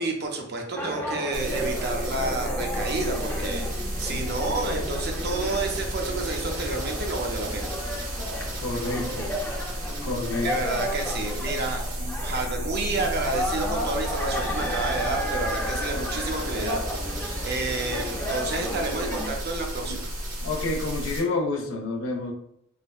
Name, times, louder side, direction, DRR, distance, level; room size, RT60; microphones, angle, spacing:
voice 1, 0.0-7.7 10.4-20.1, right 3 dB, 50° right, 2 dB, 0.5 m, -30 dB
sound 1, 0.7-19.3, equal, 10° left, 0.4 m, -33 dB
sound 2, 1.3-21.2, equal, 80° right, 1.3 m, -32 dB
voice 2, 8.6-9.3 10.0-10.5 20.4-22.3, left 3 dB, 70° left, 1 dB, 0.5 m, -28 dB
3.3 x 2.1 x 2.3 m, 0.73 s
head